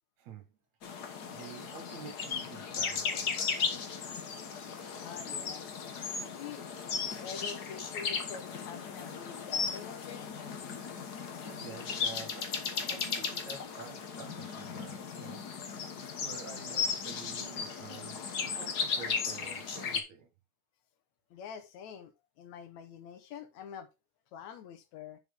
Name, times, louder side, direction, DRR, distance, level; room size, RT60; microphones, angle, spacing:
sound 1, 0.8-20.0, left 6 dB, 60° left, 1.1 m, -36 dB
voice 1, 1.3-3.8 11.4-15.5 16.2-20.3, right 6 dB, 70° right, 2.7 m, -49 dB
voice 2, 5.0-5.7 6.2-6.6 7.2-10.3 21.3-23.9 24.3-25.2, left 7 dB, 75° left, 2.2 m, -46 dB
7.4 x 7.4 x 3.6 m
omnidirectional pair, 3.4 m